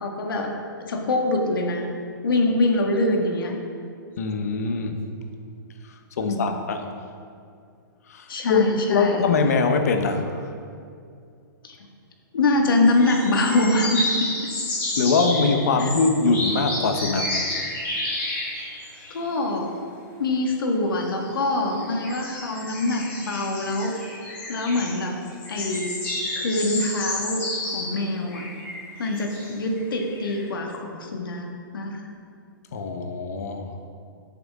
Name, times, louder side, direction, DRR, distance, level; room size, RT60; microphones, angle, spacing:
voice 1, 0.0-1.9 2.2-3.5 6.2-6.5 8.3-9.3 11.6-11.9 12.3-14.3 15.8-15.9 19.1-19.8 20.2-24.1 24.5-25.2 25.5-25.9 26.3-28.4 29.0-32.0, left 2 dB, 75° left, 1 dB, 1.8 m, -24 dB
voice 2, 4.2-5.0 5.9-6.8 8.1-10.5 15.0-17.3 32.7-33.7, left 4 dB, 45° left, 6 dB, 1.0 m, -23 dB
sound 1, 12.7-19.5 21.0-28.0 28.3-30.4, left 2 dB, 15° left, 2.5 m, -31 dB
14.0 x 7.8 x 3.7 m, 2.3 s
hypercardioid pair, 180°, 12 cm